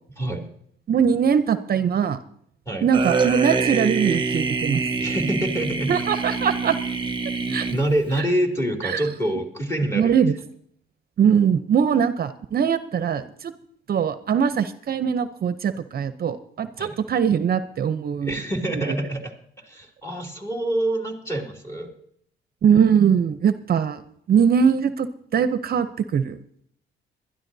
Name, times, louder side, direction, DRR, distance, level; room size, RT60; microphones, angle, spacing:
voice 1, 0.9-2.2 2.8-4.8 5.9-6.8 7.5-7.7 8.8-9.0 9.9-10.3 11.2-13.5 13.9-18.3 18.7-18.9 22.6-24.0 24.3-25.9 26.1-26.4, right 7 dB, 50° right, 11 dB, 0.7 m, -21 dB
sound 1, 2.9-8.2, right 4 dB, 25° right, 1.0 m, -25 dB
voice 2, 5.0-6.0 7.7-10.2 16.8-17.0 18.2-21.9, right 1 dB, 15° left, 1 dB, 2.8 m, -26 dB
21.0 x 12.5 x 2.7 m, 0.66 s
cardioid pair, 90°, 20 cm